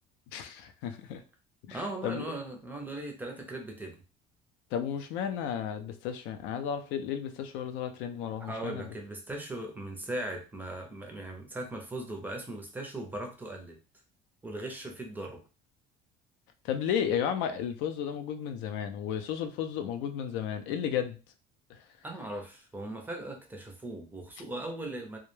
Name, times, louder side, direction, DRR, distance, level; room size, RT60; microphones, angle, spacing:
voice 1, 0.3-1.2 1.6-2.2 4.7-8.9 16.6-21.2 21.7-21.9, left 8 dB, 85° left, 9 dB, 0.4 m, -33 dB
voice 2, 1.7-3.9 8.4-13.8 14.4-15.4 22.0-25.2, right 1 dB, 10° right, 3 dB, 0.4 m, -39 dB
2.2 x 2.1 x 3.0 m, 0.33 s
cardioid pair, 160°, 19 cm